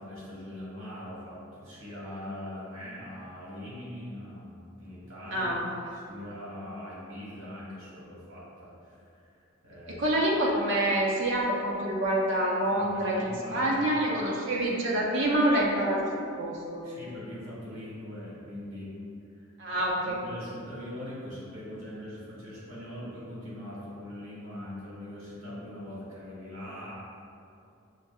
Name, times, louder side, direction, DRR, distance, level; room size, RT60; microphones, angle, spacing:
voice 1, 0.0-5.5 5.9-10.1 12.6-14.1 16.8-19.0 19.3-19.5 19.7-27.0, left 1 dB, 85° right, -7 dB, 1.3 m, -42 dB
voice 2, 9.9-16.8 19.6-20.2, right 1 dB, 65° right, -3 dB, 0.7 m, -27 dB
6.2 x 2.6 x 2.3 m, 2.6 s
head